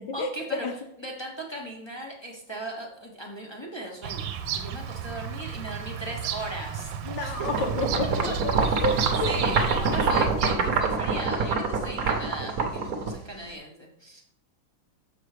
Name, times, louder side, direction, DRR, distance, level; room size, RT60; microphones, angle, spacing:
voice 1, 0.1-7.5 8.3-9.0 9.2-14.2, right 1 dB, 20° left, -2 dB, 0.9 m, -38 dB
Bird vocalization bird call bird song, 4.0-10.8, right 8 dB, 75° right, 1.4 m, -34 dB
voice 2, 7.1-8.6 8.8-9.3 12.0-12.1, left 2 dB, 70° left, 5 dB, 1.4 m, -30 dB
sound 1, 7.4-13.5, right 4 dB, 55° right, 1.2 m, -25 dB
7.0 x 5.9 x 5.0 m, 0.74 s
omnidirectional pair, 2.2 m